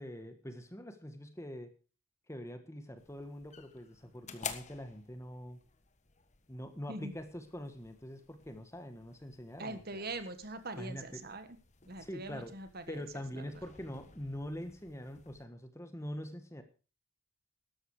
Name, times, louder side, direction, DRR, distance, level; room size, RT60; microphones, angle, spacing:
voice 1, 0.0-1.7 2.3-5.6 6.5-10.1 10.8-11.2 12.0-12.5 12.9-16.6, equal, 15° left, 8 dB, 1.6 m, -44 dB
sound 1, 3.0-15.4, left 6 dB, 35° left, 1.3 m, -52 dB
voice 2, 9.6-11.6 11.9-13.0 13.4-13.5, right 2 dB, 45° right, 10 dB, 1.4 m, -42 dB
13.0 x 11.5 x 4.9 m, 0.35 s
head